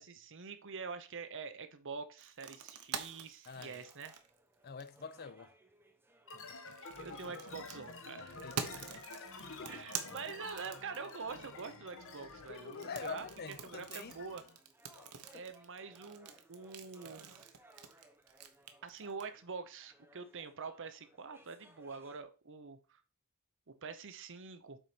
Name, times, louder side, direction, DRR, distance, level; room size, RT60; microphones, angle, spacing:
voice 1, 0.0-4.1 6.8-8.7 9.7-14.4 15.3-17.5 18.8-23.0 23.8-24.8, right 5 dB, 60° right, 0.9 m, -46 dB
sound 1, 2.2-5.1 6.5-11.3 12.7-19.2, right 7 dB, 80° right, 1.0 m, -46 dB
voice 2, 3.5-3.8 4.6-5.5 6.3-6.8 8.4-9.9 12.5-14.3 14.9-15.4, left 5 dB, 45° left, 0.6 m, -47 dB
sound 2, 3.7-22.2, right 1 dB, 10° right, 0.9 m, -65 dB
sound 3, 6.3-14.6, left 3 dB, 65° left, 1.2 m, -50 dB
7.4 x 4.2 x 5.1 m
head